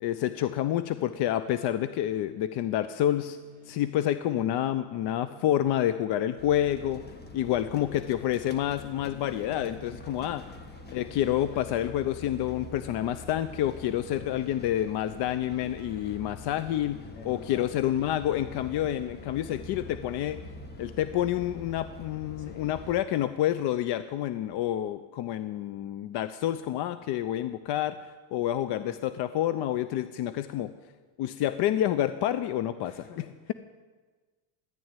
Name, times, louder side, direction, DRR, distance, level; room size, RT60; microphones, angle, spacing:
voice 1, 0.0-3.4 3.7-7.0 7.3-10.4 10.9-17.0 17.2-20.4 20.8-28.0 28.3-30.7 31.2-33.2, left 12 dB, 55° left, 12 dB, 0.7 m, -28 dB
sound 1, 3.1-17.8, right 3 dB, 15° right, 1.9 m, -57 dB
sound 2, 6.4-23.0, left 2 dB, 20° left, 1.4 m, -45 dB
voice 2, 7.5-8.0 10.4-10.5 17.1-17.7 18.4-18.6 22.4-22.6 28.8-29.0 32.8-33.5, left 5 dB, 80° left, 6 dB, 2.4 m, -50 dB
14.5 x 11.0 x 9.0 m, 1.4 s
cardioid pair, 120°, 47 cm